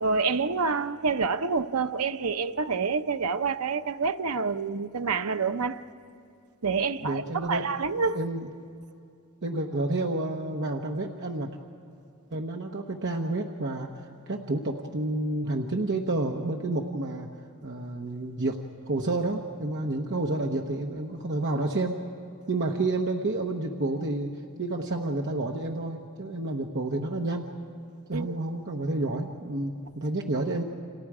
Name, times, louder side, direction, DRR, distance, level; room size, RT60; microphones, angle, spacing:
voice 1, 0.0-5.8 6.6-8.2 28.1-28.3, right 4 dB, 85° right, 0.8 m, -27 dB
voice 2, 7.0-7.7 8.1-8.5 9.4-11.6 12.3-13.9 14.3-17.3 17.6-22.1 22.5-27.5 28.1-30.6, right 2 dB, 55° right, 1.1 m, -30 dB
30.0 x 26.5 x 4.9 m
head